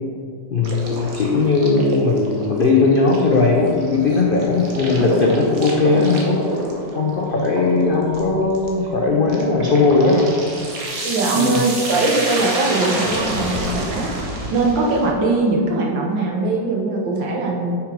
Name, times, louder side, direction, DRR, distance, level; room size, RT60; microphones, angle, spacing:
voice 1, 0.5-6.5 6.9-10.4 11.3-11.6, left 3 dB, 80° left, -1 dB, 0.4 m, -18 dB
sound 1, 0.6-15.1, right 1 dB, 55° right, 1.5 m, -28 dB
voice 2, 11.0-14.1 14.5-17.7, right 2 dB, 80° right, -1 dB, 1.9 m, -21 dB
6.5 x 6.0 x 5.0 m, 2.2 s
omnidirectional pair, 2.0 m